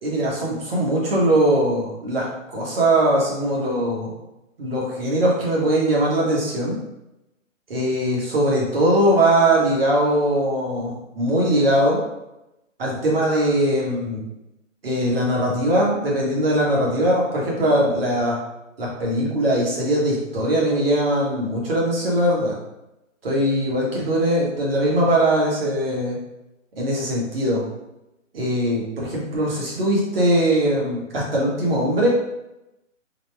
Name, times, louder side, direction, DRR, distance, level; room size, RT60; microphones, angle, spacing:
voice 1, 0.0-4.1 4.6-6.8 7.7-12.0 12.8-14.2 14.8-18.4 18.8-22.5 23.2-26.2 26.8-27.6 28.3-32.1, right 1 dB, 45° right, -4 dB, 1.3 m, -21 dB
4.1 x 2.3 x 3.3 m, 0.92 s
hypercardioid pair, 155°, 39 cm